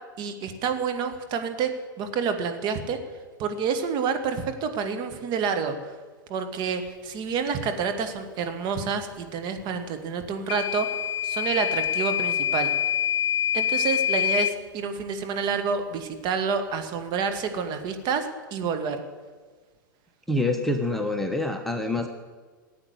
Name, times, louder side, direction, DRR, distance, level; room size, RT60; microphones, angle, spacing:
voice 1, 0.2-3.0 3.4-5.7 6.3-10.9 11.2-12.7 13.5-19.0, right 5 dB, 40° right, 8 dB, 2.1 m, -28 dB
Microwave oven / Alarm, 10.5-14.6, left 10 dB, 35° left, 0.4 m, -25 dB
voice 2, 20.3-22.1, left 2 dB, ahead, 4 dB, 1.2 m, -26 dB
16.5 x 8.7 x 9.7 m, 1.4 s
hypercardioid pair, 100°, 12 cm